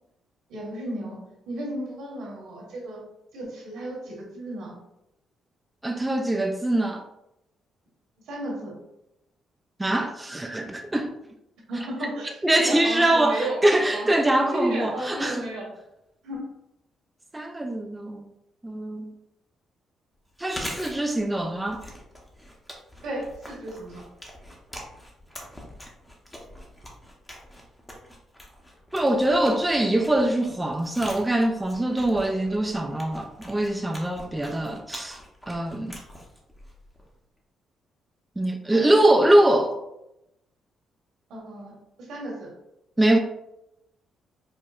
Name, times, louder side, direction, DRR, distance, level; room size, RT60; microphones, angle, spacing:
voice 1, 0.5-3.1 3.3-4.8 8.2-8.8 11.7-14.1 14.5-15.7 16.2-16.5 23.0-24.0 38.7-39.3 41.3-41.7 42.0-42.5, right 1 dB, 80° right, -3 dB, 1.2 m, -34 dB
voice 2, 5.8-7.0 9.8-11.1 12.4-15.4 17.3-18.3 18.6-19.1 20.4-21.8 28.9-35.2 35.5-36.0 38.4-39.8 43.0-43.2, right 1 dB, 10° right, 3 dB, 0.3 m, -23 dB
Chewing mastication, 20.3-37.2, equal, 10° left, 0.7 m, -44 dB
4.5 x 2.1 x 2.3 m, 0.86 s
cardioid pair, 90°, 0 cm